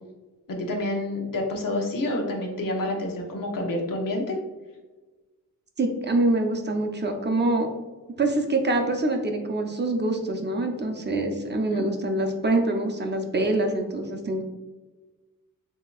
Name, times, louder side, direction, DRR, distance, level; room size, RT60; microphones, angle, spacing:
voice 1, 0.5-4.4 11.7-11.8, left 1 dB, 70° left, 0 dB, 1.1 m, -28 dB
voice 2, 5.8-7.7 8.2-14.4, right 2 dB, 30° right, 3 dB, 0.5 m, -25 dB
7.5 x 2.8 x 2.4 m, 1.2 s
wide cardioid pair, 160°, 34 cm